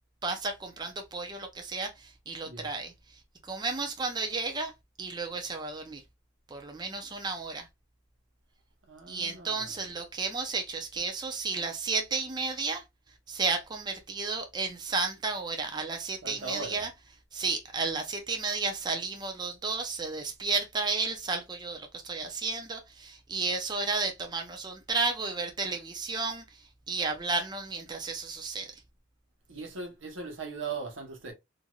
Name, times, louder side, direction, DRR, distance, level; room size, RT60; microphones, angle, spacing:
voice 1, 0.2-2.9 3.4-4.7 5.0-6.0 6.5-7.7 9.1-12.8 13.3-16.9 17.3-28.8, right 4 dB, 20° right, 0.5 m, -32 dB
voice 2, 8.9-9.8 16.2-16.9 29.5-31.3, right 4 dB, 90° right, 0.9 m, -39 dB
3.0 x 2.5 x 2.3 m
head